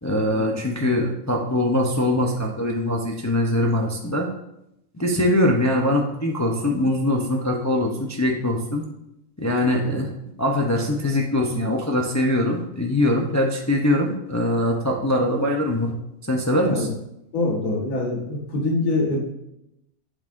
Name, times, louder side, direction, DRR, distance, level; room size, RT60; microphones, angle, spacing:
voice 1, 0.0-4.3 5.0-8.8 9.4-10.1 10.4-15.9 16.3-16.9, left 1 dB, 20° left, 0 dB, 0.5 m, -22 dB
voice 2, 17.3-19.2, left 2 dB, 70° left, -2 dB, 1.9 m, -24 dB
7.9 x 7.2 x 2.6 m, 0.83 s
omnidirectional pair, 1.5 m